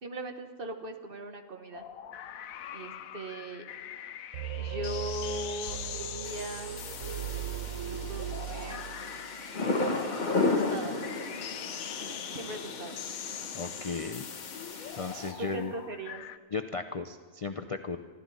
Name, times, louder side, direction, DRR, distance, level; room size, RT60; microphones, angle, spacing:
voice 1, 0.0-1.8 2.7-3.7 4.6-6.8 7.7-8.9 10.5-11.0 12.3-13.0 15.4-16.2, right 1 dB, 45° right, 6 dB, 1.3 m, -39 dB
sound 1, 1.7-16.4, left 10 dB, 80° left, 1.1 m, -43 dB
sound 2, 4.3-9.3, right 9 dB, 85° right, 1.2 m, -38 dB
sound 3, 6.2-15.3, left 3 dB, 35° left, 1.4 m, -34 dB
voice 2, 13.5-14.3 14.9-15.7 16.5-18.0, left 4 dB, 55° left, 7 dB, 0.3 m, -35 dB
24.5 x 14.0 x 4.1 m, 1.5 s
omnidirectional pair, 1.4 m